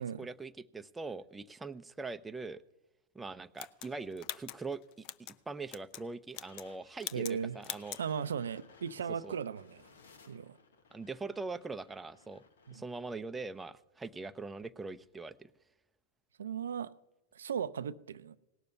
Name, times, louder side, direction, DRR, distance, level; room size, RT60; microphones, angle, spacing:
voice 1, 0.0-2.6 3.1-4.8 5.5-8.0 9.2-9.3 10.9-12.4 12.7-15.5, right 3 dB, 10° right, 0.6 m, -42 dB
sound 1, 3.6-5.4 5.7-6.0 6.3-6.7 7.0-7.4 7.6-8.0, left 13 dB, 50° left, 0.6 m, -43 dB
sound 2, 6.3-12.8, left 5 dB, 80° left, 1.5 m, -61 dB
voice 2, 7.1-7.6 8.0-9.8 10.3-10.6 12.7-12.8 16.4-16.9 17.3-18.4, right 7 dB, 85° right, 0.5 m, -37 dB
18.0 x 6.8 x 9.4 m
hypercardioid pair, 105°, 0 cm